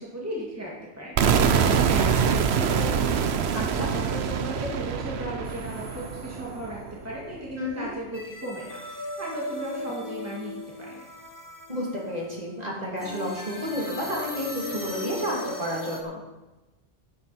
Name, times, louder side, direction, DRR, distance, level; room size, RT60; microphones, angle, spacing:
voice 1, 0.0-11.1, equal, 15° right, -5 dB, 2.3 m, -36 dB
sound 1, 1.2-7.0, right 7 dB, 70° right, 1.0 m, -24 dB
voice 2, 3.5-3.9 7.6-7.9 11.7-16.2, equal, 35° right, -4 dB, 3.2 m, -31 dB
sound 2, 5.4-6.7 8.1-16.0, left 1 dB, 20° left, 1.2 m, -38 dB
12.0 x 12.0 x 4.4 m, 1.1 s
omnidirectional pair, 1.1 m